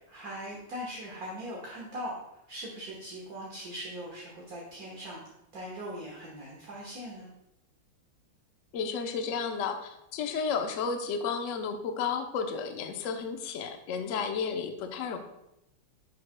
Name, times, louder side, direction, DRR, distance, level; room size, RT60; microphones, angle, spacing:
voice 1, 0.1-7.3, equal, 50° right, -3 dB, 1.6 m, -40 dB
voice 2, 8.7-15.2, left 5 dB, 80° left, 5 dB, 0.7 m, -32 dB
10.5 x 6.4 x 2.2 m, 0.84 s
omnidirectional pair, 2.4 m